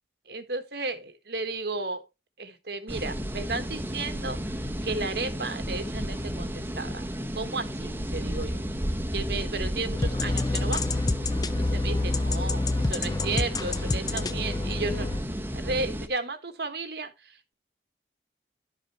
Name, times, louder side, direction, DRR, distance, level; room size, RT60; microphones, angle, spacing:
voice 1, 0.3-2.0 2.4-7.0 7.3-8.6 9.1-10.8 11.6-15.2 15.5-17.5, right 3 dB, 65° right, 1.4 m, -34 dB
sound 1, 2.9-16.1, equal, 10° right, 0.9 m, -33 dB
sound 2, 9.9-15.2, left 2 dB, 20° left, 0.5 m, -28 dB
11.5 x 5.1 x 4.3 m
head